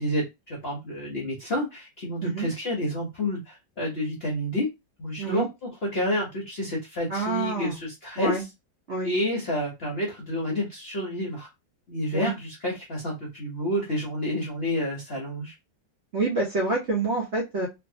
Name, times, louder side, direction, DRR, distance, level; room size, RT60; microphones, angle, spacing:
voice 1, 0.0-4.7 5.0-8.4 9.0-11.5 11.9-15.5, left 1 dB, 45° left, -3 dB, 0.8 m, -29 dB
voice 2, 7.1-7.8 8.2-8.4 8.9-9.1 12.1-12.3 16.1-17.7, right 3 dB, 50° right, -3 dB, 0.9 m, -27 dB
3.2 x 2.7 x 2.6 m, 0.22 s
omnidirectional pair, 2.1 m